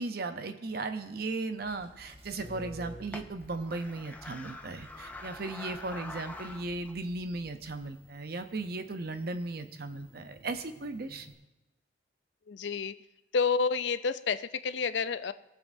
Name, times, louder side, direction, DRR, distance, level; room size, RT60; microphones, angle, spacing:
voice 1, 0.0-11.3, right 3 dB, 55° right, 8 dB, 0.7 m, -36 dB
sound 1, 0.7-11.3, equal, 30° right, 1.1 m, -54 dB
sound 2, 1.6-7.9, left 2 dB, 10° left, 0.4 m, -47 dB
voice 2, 12.5-12.9 13.3-15.3, left 5 dB, 70° left, 13 dB, 0.5 m, -29 dB
22.0 x 7.4 x 2.7 m, 1.0 s
head